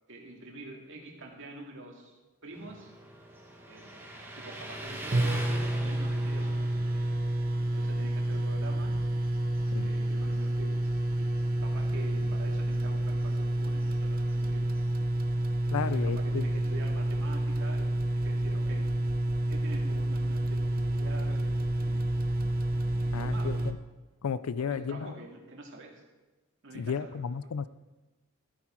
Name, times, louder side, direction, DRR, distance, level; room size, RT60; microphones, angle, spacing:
voice 1, 0.1-2.9 3.7-7.1 7.7-8.9 9.8-14.7 15.7-18.9 19.5-22.1 23.0-23.7 24.6-26.0 26.6-27.2, right 2 dB, 60° right, 0 dB, 2.3 m, -46 dB
Motorcycle, 2.5-15.1, right 1 dB, 10° right, 1.5 m, -46 dB
sound 1, 5.1-23.7, right 1 dB, 40° right, 0.8 m, -29 dB
voice 2, 15.7-16.5 23.1-23.8 24.2-25.1 26.7-27.7, left 6 dB, 75° left, 16 dB, 0.4 m, -33 dB
13.5 x 9.2 x 4.4 m, 1.1 s
head